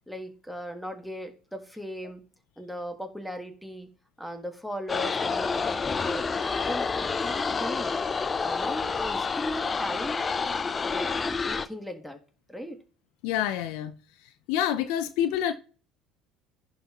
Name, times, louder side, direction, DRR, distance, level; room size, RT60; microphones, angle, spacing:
voice 1, 0.1-2.2 2.6-3.9 4.2-7.9 8.4-10.2 10.9-11.1 11.4-12.2 12.5-12.8, left 1 dB, 5° left, 1.8 m, -37 dB
sound 1, 4.9-11.7, left 4 dB, 30° left, 0.6 m, -28 dB
voice 2, 13.2-13.9 14.5-15.5, left 10 dB, 70° left, 0.6 m, -27 dB
11.0 x 4.0 x 3.0 m
hypercardioid pair, 70°, 0 cm